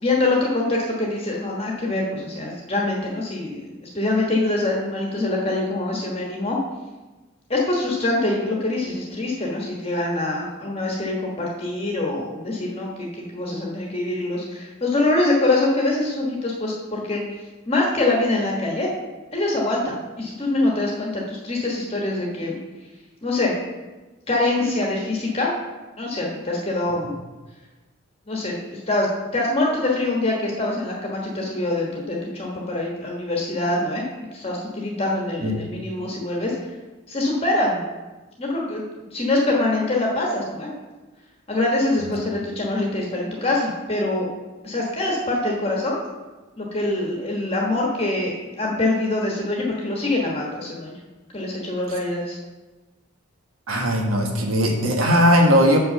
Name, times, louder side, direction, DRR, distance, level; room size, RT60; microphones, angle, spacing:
voice 1, 0.0-6.6 7.5-17.2 17.7-18.9 19.3-22.6 23.2-23.5 24.3-25.5 26.0-27.1 28.3-29.1 29.3-34.0 34.3-36.5 37.1-37.8 38.4-40.7 41.5-44.3 44.6-46.0 46.6-50.9 51.3-52.4, left 2 dB, 30° left, -2 dB, 1.2 m, -24 dB
voice 2, 53.7-55.8, equal, 80° right, 2 dB, 1.4 m, -18 dB
6.0 x 5.5 x 6.7 m, 1.2 s
head